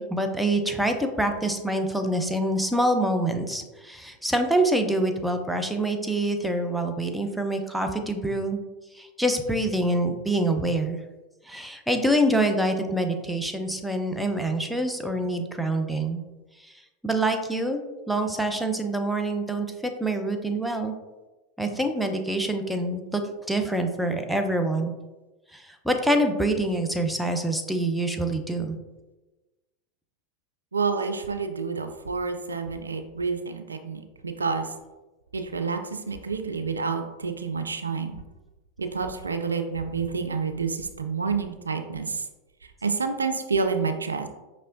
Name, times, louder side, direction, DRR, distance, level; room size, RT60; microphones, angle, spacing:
voice 1, 0.0-8.6 8.9-11.0 11.4-16.2 16.6-16.7 17.0-17.8 18.1-20.9 21.6-23.2 23.5-24.9 25.5-28.8, right 1 dB, ahead, 5 dB, 0.5 m, -26 dB
voice 2, 30.7-34.7 35.3-38.2 38.8-42.2 42.8-44.3, right 5 dB, 90° right, 7 dB, 0.3 m, -29 dB
5.4 x 3.1 x 2.6 m, 1.1 s
hypercardioid pair, 90°, 0 cm